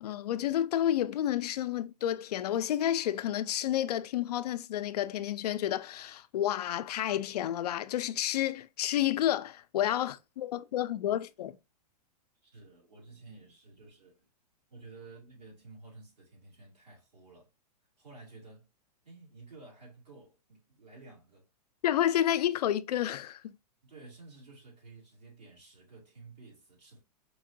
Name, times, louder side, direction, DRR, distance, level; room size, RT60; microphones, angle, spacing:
voice 1, 0.0-11.6 21.8-23.6, left 11 dB, 70° left, 0.4 m, -30 dB
voice 2, 12.4-14.3 14.7-17.5 18.0-18.7 19.0-21.5 23.8-27.0, right 3 dB, 90° right, 2.4 m, -52 dB
4.5 x 2.6 x 2.5 m
hypercardioid pair, 110°, 21 cm